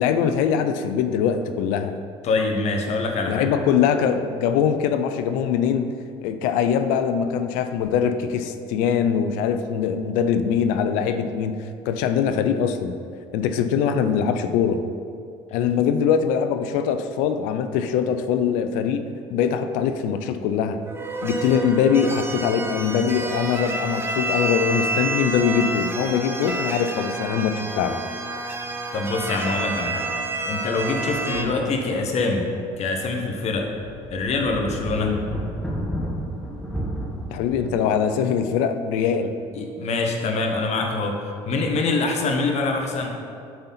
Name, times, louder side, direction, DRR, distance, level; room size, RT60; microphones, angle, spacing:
voice 1, 0.0-1.9 3.3-5.9 6.2-12.9 13.3-14.8 15.5-19.0 19.3-20.8 21.2-28.0 35.0-35.2 37.3-39.3, left 7 dB, 85° left, 9 dB, 0.5 m, -22 dB
voice 2, 2.2-3.4 28.9-30.1 30.5-32.5 32.8-33.7 34.1-35.1 39.5-43.1, left 3 dB, 55° left, 2 dB, 1.2 m, -24 dB
sound 1, 20.8-31.4, right 2 dB, 15° right, 0.8 m, -29 dB
sound 2, 31.0-32.1 32.5-32.6 33.1-37.9, right 1 dB, 5° left, 1.9 m, -33 dB
7.8 x 4.1 x 5.7 m, 2.4 s
supercardioid pair, 85°, 13 cm